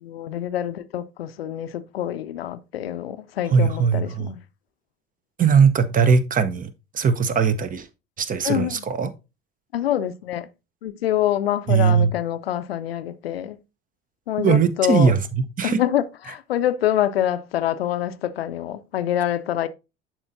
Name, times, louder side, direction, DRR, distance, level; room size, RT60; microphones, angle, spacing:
voice 1, 0.0-4.4 8.4-8.8 9.7-10.5 10.8-13.6 14.3-15.1 15.6-19.7, left 11 dB, 75° left, 0.6 m, -25 dB
voice 2, 3.5-4.3 5.4-7.9 8.2-9.1 11.7-12.1 14.4-15.8, right 6 dB, 25° right, 0.7 m, -20 dB
11.0 x 4.3 x 2.6 m
figure-of-eight pair, 60°, 30 cm